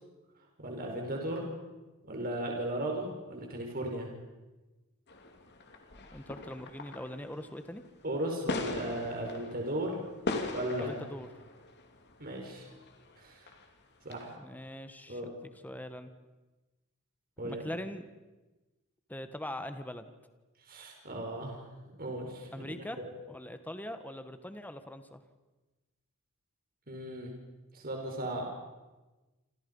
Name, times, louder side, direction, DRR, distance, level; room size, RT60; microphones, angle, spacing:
voice 1, 0.6-1.4 2.0-4.1 8.0-10.0 10.5-10.9 12.2-12.6 13.2-13.4 14.0-14.3 15.1-15.3 17.4-17.7 20.7-21.6 22.0-23.1 26.9-27.3 27.7-28.4, right 1 dB, 45° right, 1 dB, 5.1 m, -36 dB
sound 1, 5.1-13.2 13.5-13.7 14.1-14.3, left 2 dB, 50° left, 2.8 m, -41 dB
voice 2, 6.1-7.8 10.8-11.3 14.4-15.3 15.6-16.1 17.4-18.0 19.1-20.1 22.5-23.0 23.3-25.2, left 1 dB, 10° left, 9 dB, 1.3 m, -42 dB
28.0 x 27.5 x 5.5 m, 1.1 s
head